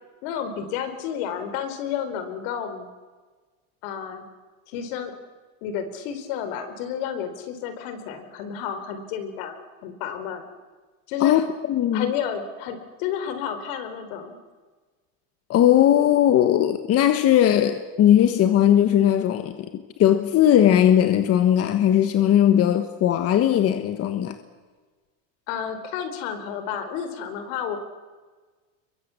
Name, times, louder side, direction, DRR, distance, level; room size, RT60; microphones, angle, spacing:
voice 1, 0.2-2.9 3.8-4.2 4.7-5.1 5.6-9.6 9.8-10.4 11.1-11.4 11.9-14.4 25.5-27.8, left 8 dB, 65° left, 4.7 m, -31 dB
voice 2, 11.7-12.1 15.5-19.7 20.0-24.4, left 11 dB, 35° left, 1.4 m, -18 dB
27.0 x 22.5 x 8.6 m
supercardioid pair, 150°, 43 cm